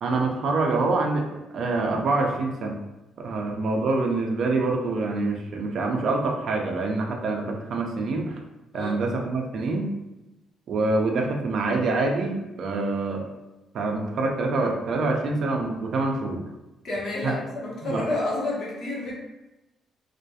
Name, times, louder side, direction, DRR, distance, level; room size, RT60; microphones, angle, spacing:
voice 1, 0.0-2.8 3.2-8.4 8.7-9.9 10.7-13.2 13.7-16.4 17.2-17.3 17.8-18.1, right 3 dB, 65° right, 1 dB, 0.4 m, -26 dB
voice 2, 16.8-19.1, left 2 dB, 60° left, -5 dB, 1.0 m, -30 dB
2.4 x 2.2 x 2.7 m, 1.0 s
cardioid pair, 90°, 0 cm